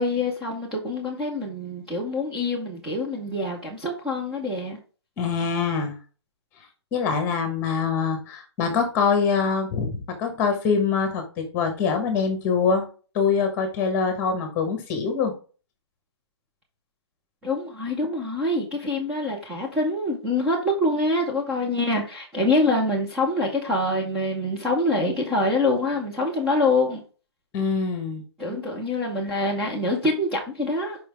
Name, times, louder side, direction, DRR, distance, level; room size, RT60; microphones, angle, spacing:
voice 1, 0.0-4.8 17.4-27.0 28.4-31.0, left 2 dB, 5° right, 0.7 m, -25 dB
voice 2, 5.2-5.9 6.9-12.9 13.1-15.3 27.5-28.2, left 5 dB, 15° left, 1.2 m, -24 dB
5.7 x 5.3 x 3.4 m
hypercardioid pair, 175°, 15 cm